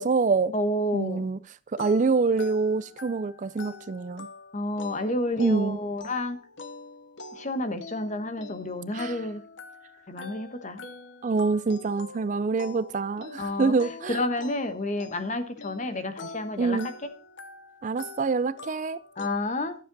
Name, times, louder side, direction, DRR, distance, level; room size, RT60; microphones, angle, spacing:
voice 1, 0.0-0.5 0.9-1.4 1.7-4.3 5.4-5.8 8.9-9.2 11.2-14.2 16.6-16.9 17.8-19.0, right 4 dB, 40° right, 0.4 m, -26 dB
voice 2, 0.5-1.3 4.5-6.4 7.4-9.4 10.1-10.8 13.4-13.7 14.1-16.8 19.2-19.7, left 1 dB, 40° left, 1.1 m, -30 dB
sound 1, 1.8-19.3, left 3 dB, 70° left, 1.0 m, -45 dB
12.0 x 7.4 x 4.0 m
head